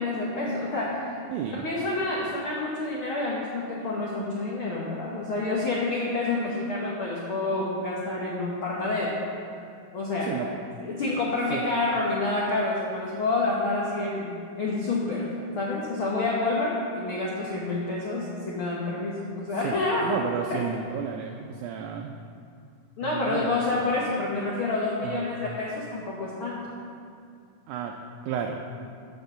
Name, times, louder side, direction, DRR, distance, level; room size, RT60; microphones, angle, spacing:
voice 1, 0.0-1.2 1.5-9.2 9.4-9.5 9.9-10.3 10.8-15.3 15.6-20.2 20.5-20.6 23.0-26.6, left 2 dB, 80° left, -5 dB, 1.1 m, -28 dB
voice 2, 1.3-1.7 10.2-10.6 11.5-11.7 19.6-22.1 23.0-23.5 25.0-25.3 27.7-27.9 28.2-28.6, right 7 dB, 85° right, 3 dB, 1.7 m, -32 dB
8.0 x 6.3 x 6.8 m, 2.3 s
omnidirectional pair, 4.1 m